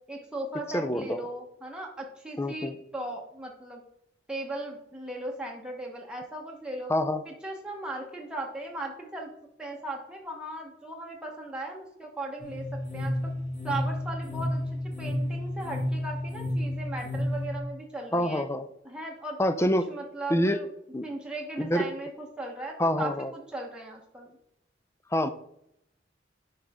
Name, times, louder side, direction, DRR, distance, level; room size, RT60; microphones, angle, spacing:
voice 1, 0.1-3.8 4.3-6.9 7.2-9.3 9.6-12.6 12.9-13.3 13.6-14.6 15.0-18.4 18.8-20.7 21.0-24.3, right 2 dB, 5° right, -1 dB, 1.0 m, -37 dB
voice 2, 0.7-1.3 2.4-2.8 6.9-7.2 18.1-18.7 19.4-19.9 20.3-20.6 20.9-21.1 21.6-21.9 22.8-23.3 25.1-25.3, left 1 dB, 15° left, 11 dB, 0.5 m, -26 dB
sound 1, 12.4-17.6, left 1 dB, 45° left, 3.4 m, -31 dB
10.0 x 5.1 x 3.6 m, 0.79 s
head